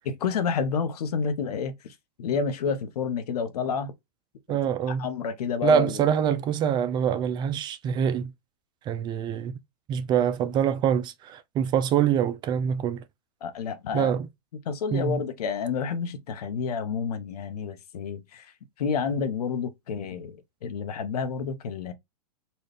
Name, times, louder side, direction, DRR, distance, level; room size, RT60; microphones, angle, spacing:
voice 1, 0.2-3.9 4.5-6.1 13.4-14.1 14.7-18.5 18.8-21.9, left 6 dB, 75° left, 1.1 m, -30 dB
voice 2, 4.5-5.1 5.6-8.3 8.9-9.5 9.9-13.0 13.9-14.3 14.9-15.2, right 8 dB, 25° right, 0.3 m, -25 dB
4.3 x 2.4 x 3.3 m
hypercardioid pair, 135°, 20 cm